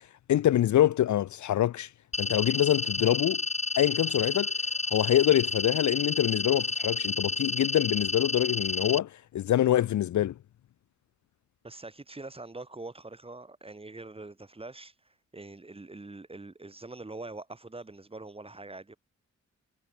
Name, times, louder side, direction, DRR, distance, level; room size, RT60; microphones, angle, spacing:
voice 1, 0.3-1.9 2.2-3.4 3.8-4.5 4.9-10.3, left 12 dB, 70° left, 0.5 m, -25 dB
sound 1, 2.1-9.0, left 3 dB, 25° left, 1.4 m, -30 dB
voice 2, 11.6-19.0, right 2 dB, 20° right, 5.7 m, -44 dB
wide cardioid pair, 170°, 30 cm